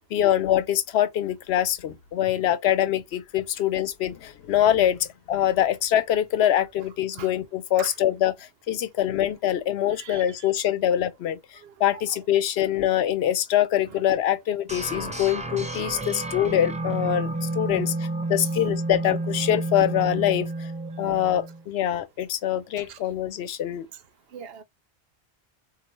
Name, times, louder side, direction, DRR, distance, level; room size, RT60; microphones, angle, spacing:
voice 1, 0.0-8.3 8.7-11.4 11.8-20.7 21.0-23.9, left 11 dB, 85° left, 0.9 m, -24 dB
voice 2, 10.0-10.5 11.6-12.0 13.9-14.0 18.4-18.5 22.8-23.0 24.3-24.6, right 8 dB, 75° right, 0.9 m, -42 dB
sound 1, 14.7-21.6, right 2 dB, 10° right, 0.5 m, -30 dB
3.8 x 2.8 x 3.1 m
omnidirectional pair, 1.0 m